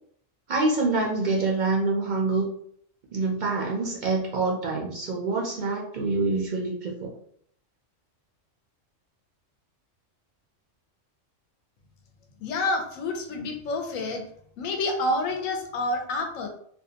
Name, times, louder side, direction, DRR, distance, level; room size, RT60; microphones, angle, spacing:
voice 1, 0.5-2.5 3.1-7.1, right 3 dB, 60° right, -2 dB, 0.5 m, -26 dB
voice 2, 12.4-14.2 14.6-16.5, left 2 dB, 90° left, 4 dB, 1.0 m, -28 dB
2.6 x 2.2 x 2.7 m, 0.65 s
omnidirectional pair, 1.3 m